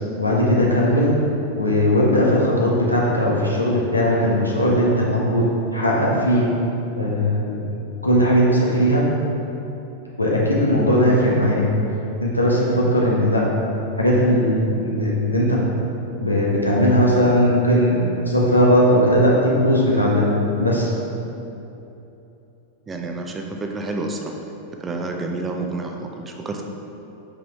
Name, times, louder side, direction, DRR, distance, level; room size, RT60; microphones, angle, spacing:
voice 1, 0.2-1.1 1.5-5.4 5.7-6.5 6.9-7.6 8.0-9.0 10.2-11.6 12.2-13.4 13.9-15.6 16.2-20.9, equal, 85° left, -4 dB, 1.2 m, -18 dB
voice 2, 22.9-24.4 24.8-26.6, right 2 dB, 20° right, 2 dB, 0.6 m, -29 dB
5.5 x 5.3 x 4.5 m, 2.9 s
figure-of-eight pair, 90°, 0 cm